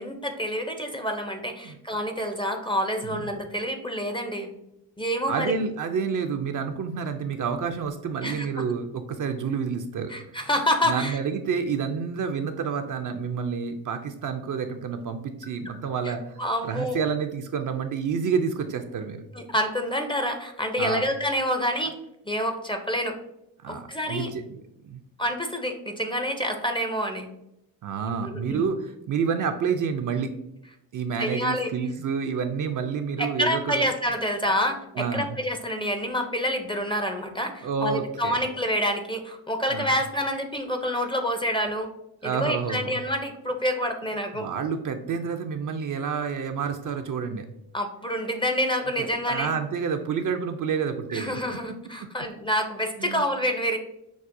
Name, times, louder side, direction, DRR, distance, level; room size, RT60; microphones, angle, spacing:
voice 1, 0.0-4.5 5.0-5.6 8.2-8.5 10.1-11.2 16.0-16.1 16.4-17.0 19.3-22.0 22.3-23.2 23.7-24.3 25.2-27.3 28.2-28.6 31.2-31.7 33.2-41.9 42.2-44.5 47.7-49.5 51.1-53.8, equal, 10° left, 5 dB, 0.5 m, -27 dB
voice 2, 5.3-10.1 10.8-19.2 20.8-21.1 23.6-24.6 24.8-25.0 27.8-30.3 30.9-33.9 35.0-35.4 37.6-38.5 39.7-39.9 42.2-43.0 44.3-47.5 49.0-51.4 53.0-53.2, right 6 dB, 45° right, 6 dB, 0.5 m, -29 dB
5.9 x 2.0 x 2.6 m, 0.83 s
supercardioid pair, 55°, 45 cm